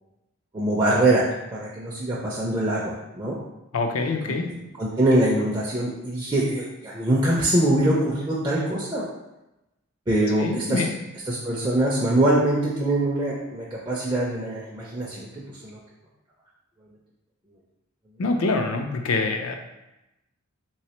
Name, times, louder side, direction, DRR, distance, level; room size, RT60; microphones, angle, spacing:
voice 1, 0.5-3.4 4.3-4.4 4.8-9.1 10.1-10.8 11.3-15.8, right 1 dB, 20° right, -6 dB, 0.4 m, -23 dB
voice 2, 3.7-4.5 10.4-10.9 18.2-19.5, left 3 dB, 80° left, 4 dB, 0.5 m, -25 dB
3.2 x 3.1 x 2.9 m, 0.95 s
head